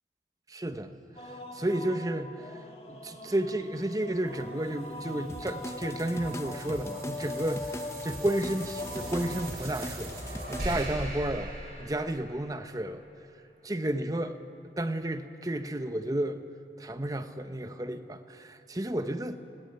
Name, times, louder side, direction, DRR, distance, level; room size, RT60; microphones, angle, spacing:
voice 1, 0.5-11.5 11.8-13.0 13.6-14.4 14.8-16.4 16.8-19.4, right 1 dB, 20° right, 9 dB, 0.8 m, -32 dB
sound 1, 1.2-9.5, left 2 dB, 35° left, 1.8 m, -42 dB
sound 2, 4.2-12.8, right 1 dB, 60° right, 5.9 m, -41 dB
sound 3, 5.3-10.9, left 1 dB, 15° left, 0.7 m, -42 dB
20.0 x 17.5 x 8.9 m, 2.8 s
head